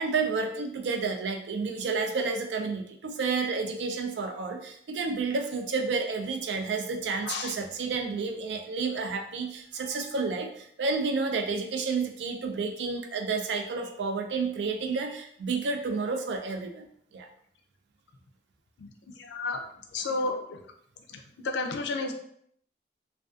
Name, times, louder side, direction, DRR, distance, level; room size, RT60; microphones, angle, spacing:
voice 1, 0.0-17.3, right 4 dB, 85° right, 4 dB, 0.4 m, -30 dB
voice 2, 19.2-19.6 19.9-20.4 21.1-22.1, left 3 dB, 85° left, 3 dB, 0.4 m, -31 dB
2.4 x 2.3 x 2.4 m, 0.67 s
head